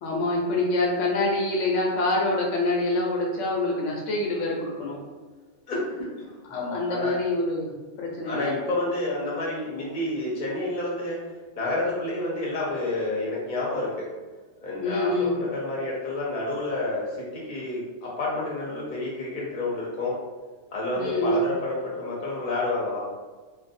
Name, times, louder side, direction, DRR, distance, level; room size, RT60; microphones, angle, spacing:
voice 1, 0.0-5.0 6.5-8.5 14.8-15.4 21.0-21.5, left 2 dB, 85° left, -2 dB, 0.9 m, -26 dB
voice 2, 5.7-7.2 8.2-11.2 11.6-14.1 14.6-20.2 20.7-23.0, left 2 dB, 45° left, -5 dB, 0.8 m, -29 dB
2.5 x 2.3 x 2.5 m, 1.3 s
omnidirectional pair, 1.2 m